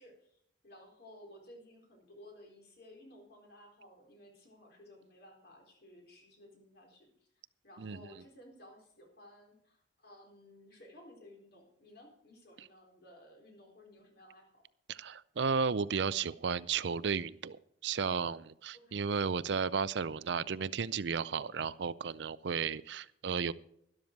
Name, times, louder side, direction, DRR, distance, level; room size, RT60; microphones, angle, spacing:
voice 1, 0.0-7.3 7.6-14.6 18.7-19.1, left 1 dB, 55° left, 2 dB, 4.1 m, -56 dB
voice 2, 14.9-23.5, right 6 dB, 65° right, 18 dB, 0.5 m, -34 dB
12.5 x 12.0 x 4.5 m, 0.73 s
head